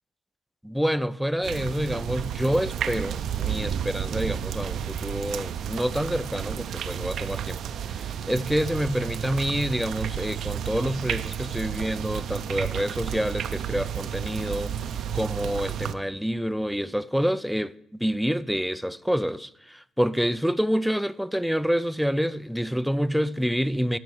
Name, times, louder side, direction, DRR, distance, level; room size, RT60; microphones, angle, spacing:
voice 1, 0.6-7.6 7.9-14.7 15.1-17.7 18.0-24.0, equal, ahead, 0.4 m, -27 dB
sound 1, 1.4-15.9, right 9 dB, 70° right, 0.6 m, -31 dB
12.5 x 5.5 x 6.2 m
cardioid pair, 90°, 0 cm